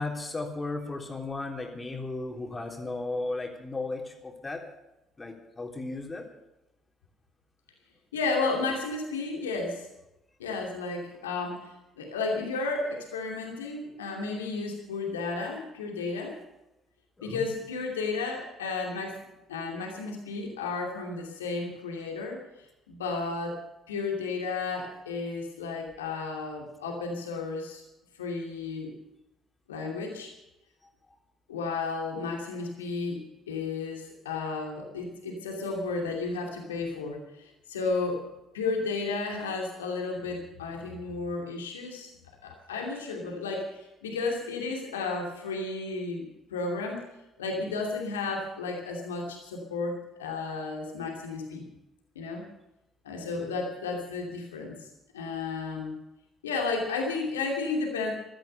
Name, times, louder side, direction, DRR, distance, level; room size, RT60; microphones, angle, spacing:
voice 1, 0.0-4.6 5.2-6.3 17.2-17.5, left 2 dB, 25° left, 2 dB, 3.6 m, -35 dB
voice 2, 8.1-9.9 10.4-16.4 17.2-19.2 19.5-22.4 22.9-23.6 23.9-27.8 28.2-28.9 29.7-30.3 31.5-38.2 38.5-42.1 42.4-47.1 47.4-51.6 52.1-52.4 53.0-55.9 56.4-58.1, left 3 dB, 75° left, 1 dB, 2.7 m, -33 dB
16.0 x 13.0 x 6.8 m, 0.92 s
figure-of-eight pair, 50°, 0 cm